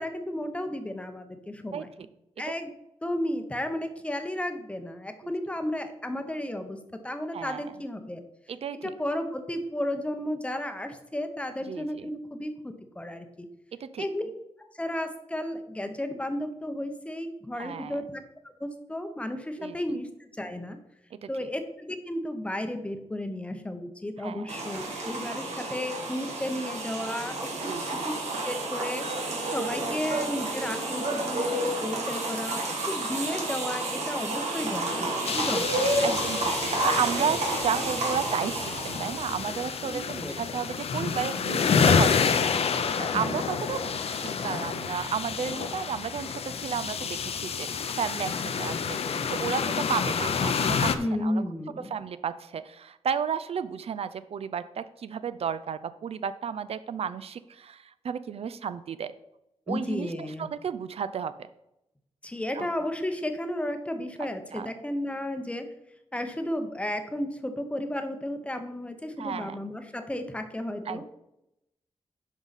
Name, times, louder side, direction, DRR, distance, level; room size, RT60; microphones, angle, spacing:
voice 1, 0.0-1.9 2.4-2.7 3.0-8.2 8.8-13.5 14.0-14.3 14.6-18.2 18.6-20.1 20.4-20.8 21.3-27.7 28.0-28.2 28.4-35.9 39.9-40.3 43.1-43.4 51.0-52.0 59.7-60.5 62.2-65.7 66.1-71.0, left 1 dB, 10° left, 7 dB, 0.7 m, -33 dB
voice 2, 7.3-7.7 8.5-8.9 11.7-12.1 13.8-14.1 17.6-18.0 19.6-20.0 21.1-21.3 24.2-24.5 27.7-28.0 35.0-35.1 36.0-42.1 42.4-49.0 49.3-50.9 51.2-51.4 51.9-59.1 59.7-61.3 62.5-62.7 64.5-64.7 69.2-69.6 70.9-71.0, right 7 dB, 65° right, 13 dB, 0.4 m, -33 dB
sound 1, 24.5-39.6, right 2 dB, 80° right, 2.0 m, -30 dB
sound 2, 35.3-51.0, left 6 dB, 65° left, 0.6 m, -28 dB
11.0 x 5.4 x 4.0 m, 0.86 s
wide cardioid pair, 180°, 11 cm